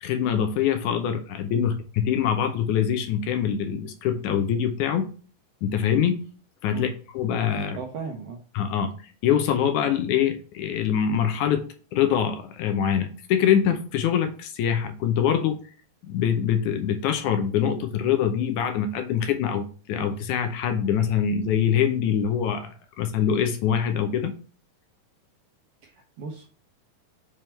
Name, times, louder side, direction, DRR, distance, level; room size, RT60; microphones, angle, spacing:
voice 1, 0.0-5.1 5.6-6.2 6.6-6.9 7.1-7.8 8.6-8.9 9.2-11.6 11.9-15.6 16.0-24.3, left 8 dB, 75° left, 6 dB, 2.1 m, -24 dB
voice 2, 7.8-8.4 25.8-26.5, right 5 dB, 70° right, 2 dB, 1.4 m, -36 dB
6.2 x 3.6 x 4.4 m, 0.38 s
omnidirectional pair, 3.7 m